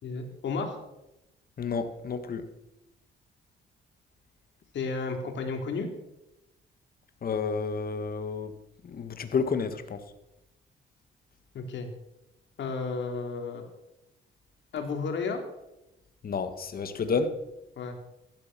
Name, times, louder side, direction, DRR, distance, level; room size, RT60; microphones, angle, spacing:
voice 1, 0.0-0.8 4.7-5.9 11.5-11.9 12.6-13.6 14.7-15.4 17.8-18.0, left 4 dB, 65° left, 4 dB, 3.5 m, -32 dB
voice 2, 1.6-2.5 7.2-8.5 8.8-10.0 16.2-17.4, left 5 dB, 50° left, 9 dB, 1.9 m, -30 dB
15.5 x 12.5 x 6.2 m, 0.92 s
cardioid pair, 90°, 20 cm